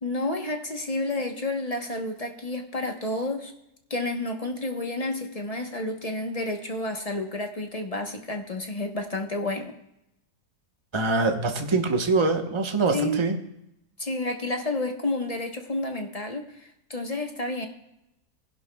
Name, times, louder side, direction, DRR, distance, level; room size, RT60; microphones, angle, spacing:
voice 1, 0.0-3.5 3.9-9.7 12.9-13.2 14.0-17.7, left 2 dB, 30° left, 4 dB, 0.9 m, -30 dB
voice 2, 10.9-13.4, right 3 dB, 20° right, 3 dB, 0.9 m, -24 dB
20.0 x 11.0 x 2.3 m, 0.84 s
omnidirectional pair, 1.7 m